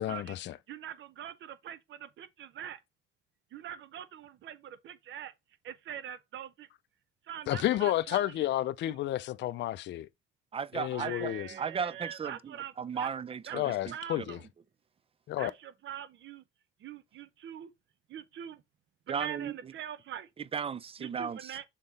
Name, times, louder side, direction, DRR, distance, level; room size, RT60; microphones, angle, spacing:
voice 1, 0.0-0.6 7.5-10.1 10.7-11.5 13.5-14.4 15.3-15.5, left 14 dB, 65° left, 0.4 m, -31 dB
voice 2, 0.7-2.8 3.5-5.3 5.6-6.7 7.3-8.2 8.9-9.0 11.0-13.1 13.5-13.6 13.9-14.4 15.4-16.4 16.8-17.7 18.1-18.6 19.1-20.3 21.0-21.6, right 10 dB, 70° right, 0.7 m, -43 dB
voice 3, 10.5-14.3 19.1-19.7 20.4-21.6, right 6 dB, 30° right, 0.4 m, -36 dB
6.4 x 3.7 x 4.0 m
cardioid pair, 90°, 20 cm